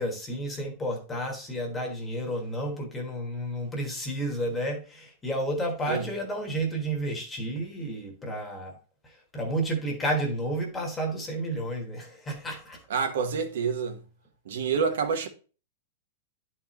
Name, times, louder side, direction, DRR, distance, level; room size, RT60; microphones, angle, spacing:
voice 1, 0.0-8.8 9.0-12.8, right 1 dB, 10° left, 1.3 m, -31 dB
voice 2, 12.9-14.0 14.4-15.3, right 6 dB, 80° right, 1.2 m, -27 dB
10.5 x 4.3 x 3.0 m
supercardioid pair, 175°, 0 cm